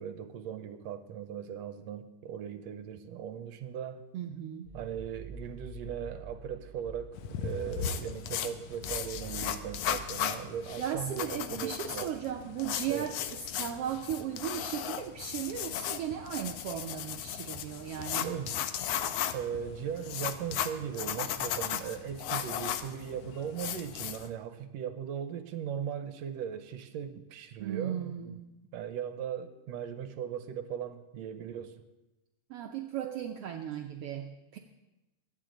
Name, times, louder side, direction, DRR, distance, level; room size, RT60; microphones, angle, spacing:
voice 1, 0.0-4.1 4.7-12.2 12.9-13.1 18.2-18.6 19.3-28.4 28.7-31.8, right 8 dB, 75° right, 9 dB, 1.7 m, -38 dB
voice 2, 4.1-4.7 10.8-18.3 27.6-28.5 32.5-34.6, right 9 dB, 90° right, 3 dB, 1.3 m, -36 dB
sound 1, 4.7-10.0, right 3 dB, ahead, 2.4 m, -47 dB
sound 2, 7.1-24.3, left 9 dB, 75° left, 1.6 m, -36 dB
22.5 x 9.5 x 3.8 m, 1.0 s
omnidirectional pair, 3.6 m